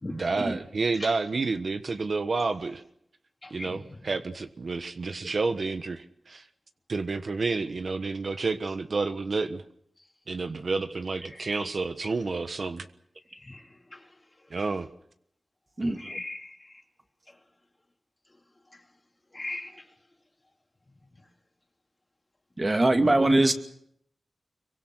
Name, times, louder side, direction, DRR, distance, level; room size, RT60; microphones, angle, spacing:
voice 1, 0.1-2.8 3.5-6.4 6.9-9.6 10.3-12.8 14.5-14.9, right 3 dB, 60° right, 9 dB, 1.3 m, -30 dB
voice 2, 3.4-4.0 11.3-11.5 13.4-13.7 13.9-14.0 16.0-16.8 19.3-19.8, left 2 dB, 25° left, 3 dB, 2.8 m, -39 dB
voice 3, 15.8-16.2 22.6-23.5, right 2 dB, 30° right, 5 dB, 2.5 m, -23 dB
26.5 x 23.5 x 6.3 m, 0.72 s
wide cardioid pair, 95°, 0 cm